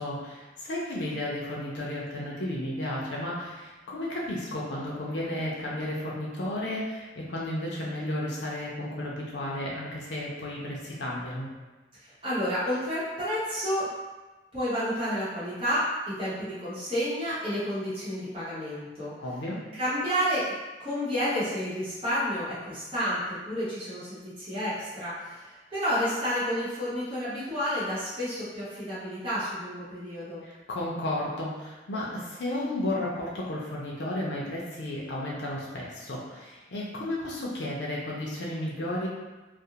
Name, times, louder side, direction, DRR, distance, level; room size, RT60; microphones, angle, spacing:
voice 1, 0.0-11.5 19.2-19.6 30.4-39.1, left 1 dB, 80° left, -5 dB, 0.5 m, -33 dB
voice 2, 12.0-13.9 14.5-19.1 19.8-20.5 20.8-30.4, equal, 30° right, -12 dB, 0.8 m, -30 dB
2.4 x 2.0 x 2.8 m, 1.2 s
head